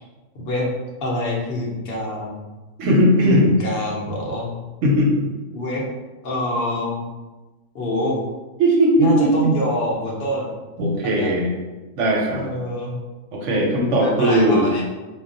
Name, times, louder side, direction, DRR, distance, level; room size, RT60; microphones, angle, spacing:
voice 1, 0.3-0.7 1.0-2.4 3.2-4.5 5.5-5.8 6.2-7.0 7.7-8.2 9.0-10.5 11.0-11.3 12.3-13.0 14.0-14.8, equal, 55° left, -3 dB, 0.8 m, -25 dB
voice 2, 2.8-3.5 4.8-5.3 8.6-9.3 10.8-11.5 12.0-12.5 13.3-14.7, equal, 70° right, -1 dB, 0.8 m, -18 dB
2.3 x 2.2 x 3.8 m, 1.2 s
omnidirectional pair, 1.5 m